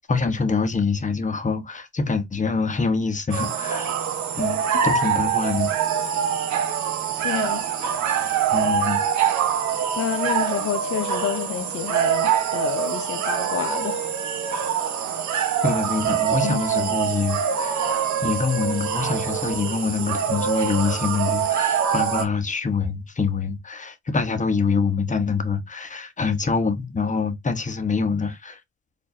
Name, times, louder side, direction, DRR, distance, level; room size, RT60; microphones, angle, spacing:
voice 1, 0.1-3.9 4.3-5.7 8.5-9.0 15.6-28.6, left 5 dB, 25° left, 1.2 m, -25 dB
sound 1, 3.3-22.2, right 8 dB, 75° right, 1.1 m, -24 dB
voice 2, 7.2-7.6 10.0-14.0 16.4-17.0, left 11 dB, 50° left, 0.6 m, -29 dB
4.8 x 2.9 x 2.7 m
cardioid pair, 80°, 29 cm